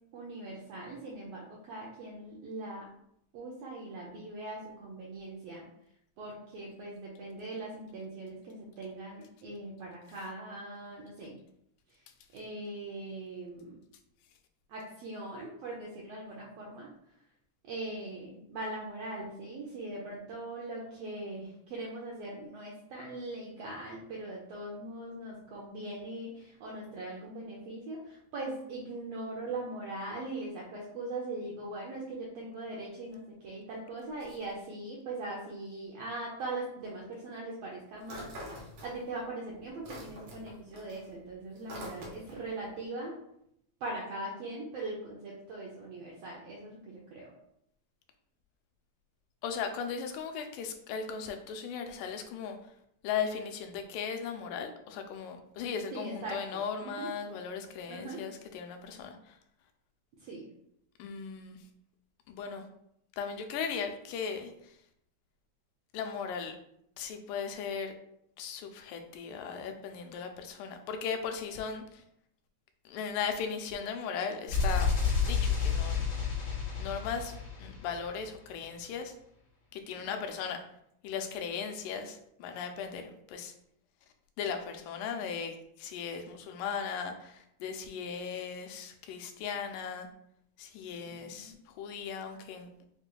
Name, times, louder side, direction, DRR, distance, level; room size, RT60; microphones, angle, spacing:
voice 1, 0.1-2.9 3.3-5.6 6.2-11.4 11.9-12.0 12.3-13.8 14.7-16.9 17.6-43.2 43.8-47.3 55.9-56.4 56.8-57.1 57.9-58.2 60.2-60.5 80.0-80.1 91.1-91.6, right 2 dB, 80° right, -3 dB, 1.4 m, -41 dB
sound 1, 38.0-39.3 39.6-42.5, equal, 65° right, 1.9 m, -45 dB
voice 2, 49.4-52.6 53.0-59.4 61.0-61.6 62.3-62.7 63.2-64.8 65.9-66.6 67.0-67.9 68.4-72.0 72.9-74.9 75.2-76.1 76.8-77.3 77.6-79.1 79.7-80.6 81.0-83.5 84.4-90.1 90.6-92.7, left 6 dB, 85° left, 6 dB, 2.0 m, -37 dB
sound 2, 74.5-78.3, left 5 dB, 70° left, 2.7 m, -30 dB
6.5 x 2.4 x 2.3 m, 0.75 s
omnidirectional pair, 3.5 m